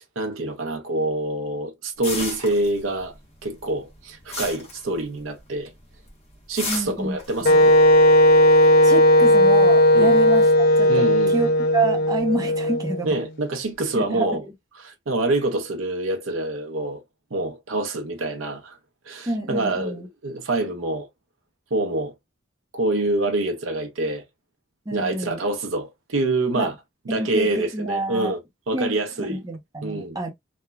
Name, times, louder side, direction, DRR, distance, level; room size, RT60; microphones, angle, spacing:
voice 1, 0.0-3.1 3.4-5.7 6.5-7.7 9.9-10.2 10.9-11.5 13.0-14.4 14.8-17.0 17.3-18.8 19.1-21.1 21.7-22.1 22.7-24.2 24.9-26.7 27.1-28.4 28.7-29.4 29.8-30.2, right 2 dB, 80° right, 0.6 m, -26 dB
sound 1, 2.0-3.2 3.4-5.5 5.8-6.1 6.6-8.5, left 3 dB, 35° left, 1.1 m, -33 dB
voice 2, 6.7-7.2 7.5-7.6 8.6-13.2 13.9-14.4 19.3-20.1 24.9-25.4 26.6-26.7 27.1-28.4 28.7-30.3, right 1 dB, 20° right, 0.6 m, -28 dB
Wind instrument woodwind instrument, 7.4-13.3, left 1 dB, 50° left, 0.5 m, -16 dB
3.1 x 2.1 x 2.2 m
head